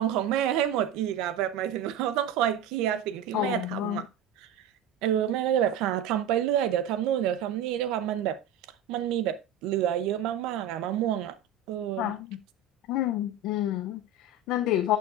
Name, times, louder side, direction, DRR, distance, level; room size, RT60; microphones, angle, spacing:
voice 1, 0.0-4.0 5.0-8.4 8.9-11.3 11.7-12.1, right 11 dB, 90° right, 0.7 m, -28 dB
voice 2, 3.3-4.0 12.0-12.4 12.9-15.0, left 13 dB, 80° left, 0.6 m, -29 dB
11.5 x 6.5 x 2.5 m
cardioid pair, 120°, 0 cm